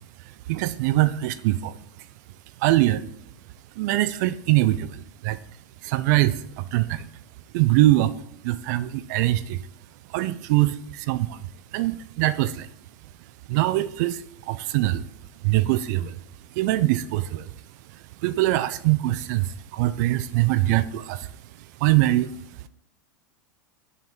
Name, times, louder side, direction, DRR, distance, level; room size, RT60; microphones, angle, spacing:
voice 1, 0.5-1.7 2.6-3.0 3.8-5.4 5.8-7.1 7.5-8.1 8.4-9.6 10.1-11.3 11.7-12.7 13.5-14.2 14.5-15.0 15.4-16.2 16.6-17.5 18.2-21.3 21.8-22.3, right 16 dB, 60° right, 0.4 m, -22 dB
6.2 x 3.6 x 4.4 m
hypercardioid pair, 105°, 11 cm